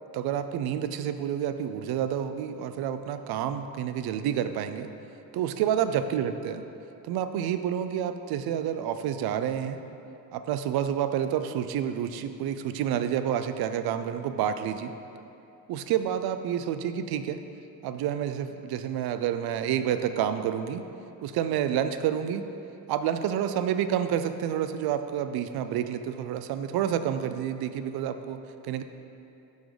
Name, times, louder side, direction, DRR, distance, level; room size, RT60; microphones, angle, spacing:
voice 1, 0.1-4.9 5.3-6.6 7.0-9.8 10.3-14.9 15.7-17.4 17.8-20.8 21.2-22.5 22.9-28.8, right 9 dB, 90° right, 10 dB, 0.5 m, -29 dB
12.0 x 4.0 x 4.9 m, 2.8 s
cardioid pair, 95°, 36 cm